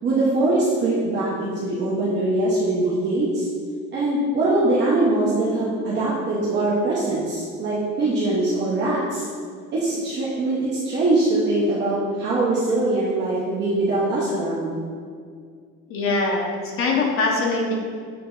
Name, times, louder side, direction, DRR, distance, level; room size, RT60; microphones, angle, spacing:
voice 1, 0.0-3.5 3.9-9.3 9.7-14.7, right 2 dB, 40° right, -7 dB, 0.9 m, -22 dB
voice 2, 15.9-17.8, left 3 dB, 45° left, 0 dB, 1.0 m, -22 dB
7.7 x 3.3 x 3.9 m, 2.1 s
cardioid pair, 180°, 29 cm